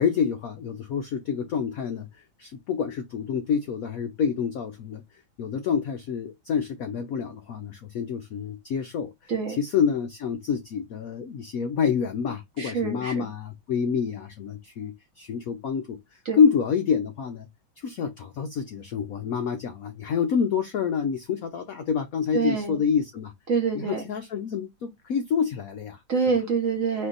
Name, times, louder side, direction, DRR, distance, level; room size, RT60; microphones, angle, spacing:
voice 1, 0.0-5.0 5.4-17.5 17.8-23.3 23.7-26.0, left 6 dB, 80° left, 0.7 m, -27 dB
voice 2, 12.6-13.2 16.2-16.4 22.3-22.8 23.5-24.0 26.1-27.1, right 5 dB, 50° right, 1.1 m, -26 dB
4.4 x 2.7 x 3.8 m
omnidirectional pair, 2.2 m